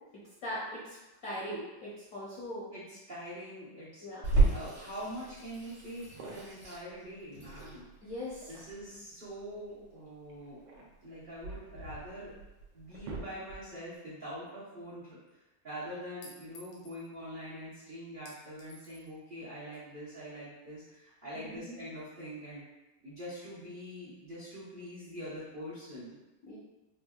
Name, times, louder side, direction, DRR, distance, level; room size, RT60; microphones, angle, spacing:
voice 1, 0.4-1.0 1.2-2.7 4.0-4.2 8.0-8.5 21.3-21.8 26.4-26.6, equal, 60° left, -8 dB, 0.9 m, -40 dB
voice 2, 2.7-4.0 4.5-7.8 8.5-12.3 12.7-15.2 15.6-22.6 23.0-26.2, equal, 40° right, -10 dB, 0.8 m, -44 dB
Water tap faucet / Sink (filling or washing), 4.2-13.2, right 3 dB, 65° right, 1.7 m, -34 dB
sound 1, 6.0-6.7 8.2-9.0 10.3-11.7 12.3-12.4 12.7-13.9, right 3 dB, 85° right, 1.3 m, -47 dB
Chink clink, 14.5-14.6 16.2-17.0 18.3-19.1, left 1 dB, 75° left, 1.3 m, -54 dB
4.4 x 2.3 x 2.3 m, 1.0 s
omnidirectional pair, 2.1 m